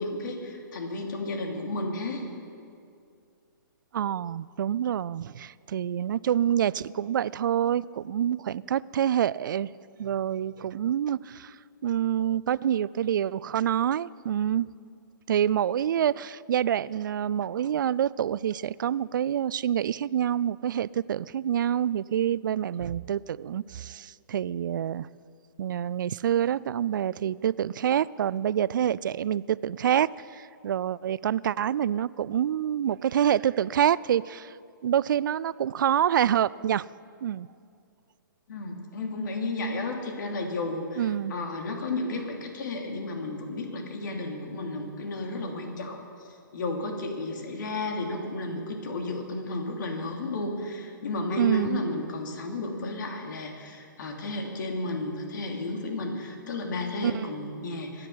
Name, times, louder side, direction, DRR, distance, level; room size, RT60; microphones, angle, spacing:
voice 1, 0.0-2.2 38.5-41.0 41.3-46.0 46.5-58.1, left 2 dB, 65° left, 2 dB, 3.0 m, -33 dB
voice 2, 3.9-9.7 10.0-14.7 15.3-25.1 25.6-34.5 34.8-36.9 37.2-37.5 41.0-41.3 51.4-51.8 57.0-57.3, right 10 dB, 65° right, 21 dB, 0.4 m, -27 dB
24.5 x 10.0 x 5.7 m, 2.4 s
hypercardioid pair, 140°, 11 cm